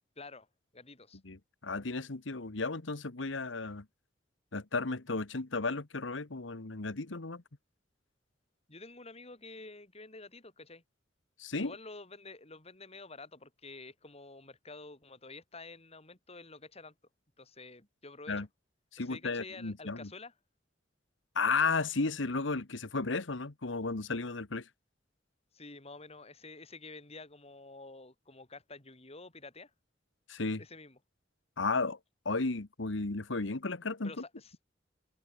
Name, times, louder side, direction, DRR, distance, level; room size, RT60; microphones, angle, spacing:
voice 1, 0.2-0.5 0.7-1.2 8.7-10.8 11.5-16.9 17.4-18.5 19.0-20.3 25.5-29.7 30.6-31.0 34.0-34.5, left 3 dB, 35° left, 4.0 m, -49 dB
voice 2, 1.2-3.8 4.5-7.4 11.4-11.7 18.3-18.5 18.9-20.1 21.3-24.6 30.3-30.6 31.6-32.0 32.2-34.1, left 3 dB, 75° left, 1.4 m, -34 dB
head